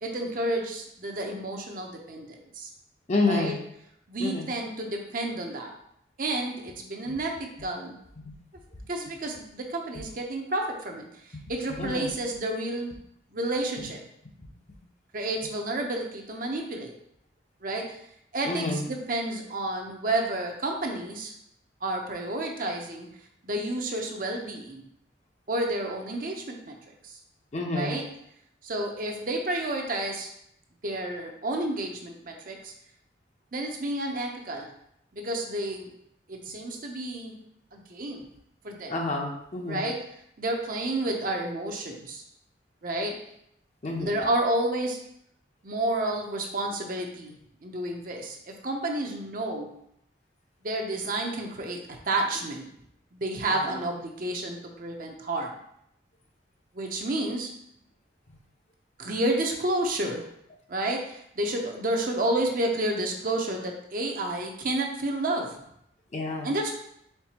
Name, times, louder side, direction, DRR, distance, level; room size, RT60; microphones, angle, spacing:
voice 1, 0.0-2.7 3.3-3.6 4.1-5.7 6.2-8.0 8.9-11.1 11.5-12.9 13.3-14.0 15.1-16.9 17.6-18.0 18.3-21.3 21.8-23.1 23.4-24.8 25.5-26.7 27.0-27.2 27.7-28.1 28.6-30.3 30.8-32.7 33.5-34.7 35.1-35.9 36.3-37.3 37.7-38.3 38.6-39.0 39.7-40.0 40.4-42.2 42.8-43.2 44.0-45.0 45.6-47.4 47.6-49.7 50.6-51.8 52.0-52.7 53.1-55.5 56.7-57.5 59.0-60.3 60.7-65.6 66.4-66.7, right 1 dB, 50° right, 2 dB, 0.6 m, -30 dB
voice 2, 3.1-3.6 4.2-4.5 7.1-7.2 8.2-8.3 11.3-11.4 11.8-12.1 18.5-18.9 27.5-28.0 38.9-39.8 43.8-44.1 53.5-53.8 66.1-66.5, left 3 dB, 40° left, 1 dB, 0.7 m, -29 dB
4.4 x 4.1 x 2.9 m, 0.74 s
head